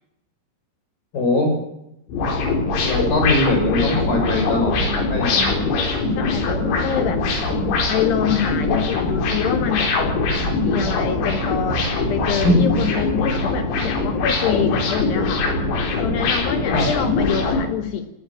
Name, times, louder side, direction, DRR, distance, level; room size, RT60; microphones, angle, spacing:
voice 1, 1.1-1.5 2.8-5.6 12.4-12.6 16.7-16.9, left 1 dB, 45° left, 3 dB, 7.7 m, -21 dB
sound 1, 2.1-17.6, left 3 dB, 85° left, 7.1 m, -22 dB
voice 2, 6.2-7.2 7.9-10.0 10.6-15.4 16.0-18.1, left 9 dB, 70° left, 9 dB, 2.9 m, -25 dB
19.0 x 18.5 x 8.8 m, 0.84 s
omnidirectional pair, 5.8 m